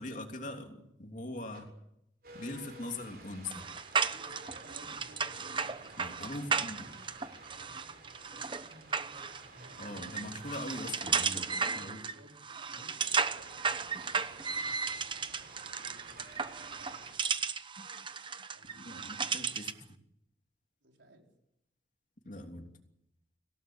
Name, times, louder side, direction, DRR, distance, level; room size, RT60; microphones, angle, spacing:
voice 1, 0.0-1.7 2.3-3.7 6.0-6.9 9.8-12.0 18.8-20.0 22.2-22.7, left 2 dB, 45° left, 4 dB, 3.2 m, -42 dB
sound 1, 1.5-1.6 2.2-17.2, right 2 dB, 55° right, 7.4 m, -53 dB
sound 2, 3.4-19.8, right 5 dB, 25° right, 0.9 m, -35 dB
voice 2, 4.6-7.0 9.6-10.6 11.3-15.1 15.8-16.3 16.5-17.3 18.5-19.5 20.8-21.3, equal, 90° right, 2 dB, 5.0 m, -60 dB
26.0 x 17.5 x 8.8 m, 0.81 s
head